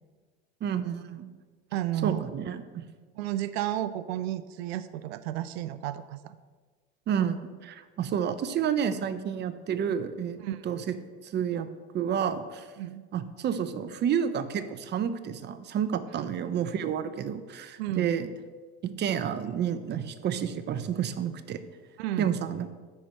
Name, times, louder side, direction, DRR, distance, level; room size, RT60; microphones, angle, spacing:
voice 1, 0.6-1.3 2.0-2.8 7.1-10.4 10.6-10.8 11.2-11.7 11.9-12.7 13.1-18.3 18.8-21.6 22.2-22.7, right 8 dB, 35° right, 12 dB, 0.7 m, -30 dB
voice 2, 1.7-2.3 3.2-6.4 10.4-10.6 12.8-13.0 16.2-16.3 17.8-18.1 22.0-22.3, right 13 dB, 85° right, 13 dB, 0.5 m, -32 dB
9.9 x 4.4 x 6.3 m, 1.4 s
supercardioid pair, 100°, 30 cm